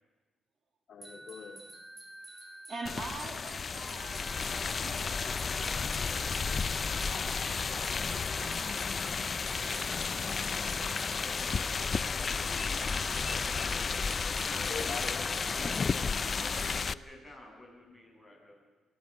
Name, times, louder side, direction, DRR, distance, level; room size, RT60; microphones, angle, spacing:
voice 1, 0.9-1.8 14.5-15.3, left 5 dB, 55° left, 3 dB, 2.5 m, -44 dB
sound 1, 1.0-15.9, right 1 dB, 25° right, 2.5 m, -50 dB
voice 2, 2.7-4.2 4.5-5.3 5.6-6.4 6.8-8.9, right 3 dB, 45° right, 4 dB, 2.8 m, -46 dB
sound 2, 2.9-16.9, left 5 dB, 40° left, 0.6 m, -32 dB
voice 3, 13.1-13.8 14.6-16.0 16.4-18.6, left 1 dB, 5° right, 1 dB, 7.8 m, -52 dB
24.0 x 15.5 x 9.0 m, 1.3 s
cardioid pair, 90°, 0 cm